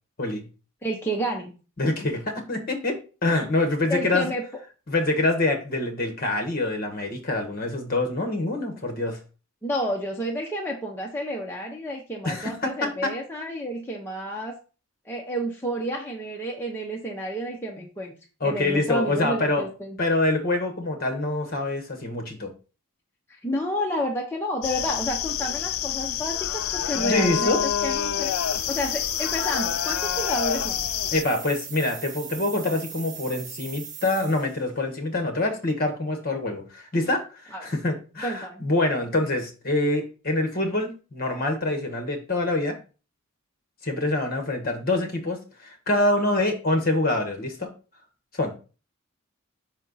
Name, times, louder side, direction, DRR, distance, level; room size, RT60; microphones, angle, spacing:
voice 1, 0.8-1.6 3.9-4.4 9.6-14.6 15.1-18.1 18.4-20.0 23.3-28.3 28.7-30.8 37.5-37.7 38.2-38.6, equal, 10° left, -1 dB, 0.7 m, -30 dB
voice 2, 1.8-4.3 4.9-9.2 12.2-13.1 18.4-19.7 20.0-22.5 27.0-27.6 31.1-42.8 43.8-47.7 48.3-48.5, left 2 dB, 45° left, 4 dB, 1.3 m, -25 dB
sound 1, 24.6-31.2, left 10 dB, 75° left, 0.3 m, -27 dB
sound 2, 28.2-34.6, right 7 dB, 35° right, 0.7 m, -39 dB
5.6 x 4.3 x 3.9 m, 0.34 s
head